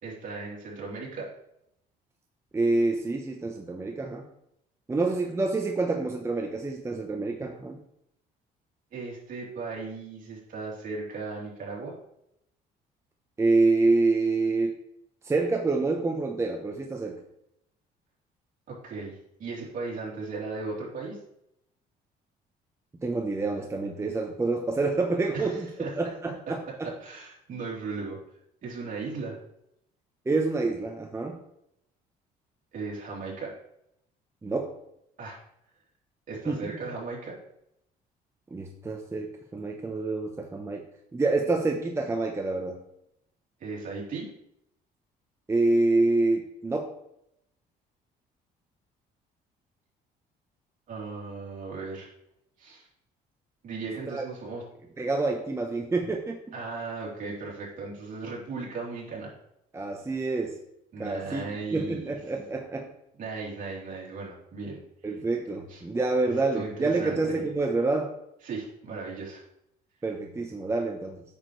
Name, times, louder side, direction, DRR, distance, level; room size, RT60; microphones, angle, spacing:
voice 1, 0.0-1.3 8.9-12.0 18.7-21.2 25.3-25.9 26.8-28.2 28.6-29.4 32.7-33.5 35.2-35.4 36.3-37.4 43.6-44.3 50.9-52.1 52.6-52.9 53.6-54.6 56.5-59.3 60.9-62.2 63.2-64.8 65.7-65.8 66.2-67.4 68.4-69.4, right 4 dB, 50° right, -3 dB, 3.1 m, -37 dB
voice 2, 2.5-4.3 4.9-7.8 13.4-14.8 15.2-17.2 23.0-25.7 26.0-26.9 30.3-31.4 34.4-34.7 36.5-36.6 38.5-40.9 41.1-42.8 45.5-46.9 54.1-54.2 55.0-56.4 59.7-60.6 61.0-61.4 61.7-62.9 65.0-68.1 70.0-71.2, right 3 dB, 15° right, 3 dB, 0.8 m, -27 dB
8.6 x 6.4 x 3.1 m, 0.78 s
cardioid pair, 110°, 17 cm